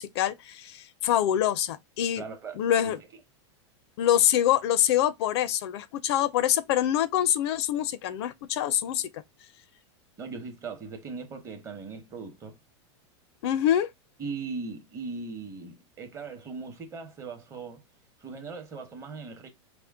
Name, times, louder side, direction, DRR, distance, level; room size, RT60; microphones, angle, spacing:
voice 1, 0.0-2.2 2.6-3.0 4.0-9.2 13.4-13.9, left 11 dB, 60° left, 0.4 m, -25 dB
voice 2, 2.2-2.6 10.2-12.6 14.2-17.8 18.2-19.5, right 4 dB, 20° right, 0.9 m, -39 dB
4.3 x 2.1 x 3.4 m
supercardioid pair, 150°, 15 cm